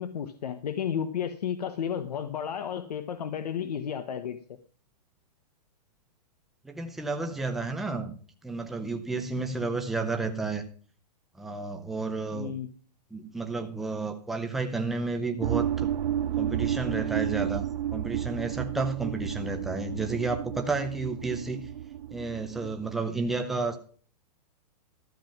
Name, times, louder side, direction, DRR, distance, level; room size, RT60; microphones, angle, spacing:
voice 1, 0.0-4.4 9.6-9.7 12.3-12.7, left 8 dB, 70° left, 10 dB, 1.2 m, -32 dB
voice 2, 6.6-8.1 8.4-10.6 11.4-12.5 13.1-15.9 16.3-17.7 17.9-21.6 22.1-23.8, right 3 dB, ahead, 4 dB, 0.6 m, -31 dB
sound 1, 15.4-22.9, right 10 dB, 85° right, 0.5 m, -32 dB
13.0 x 7.3 x 6.0 m, 0.43 s
hypercardioid pair, 175°, 21 cm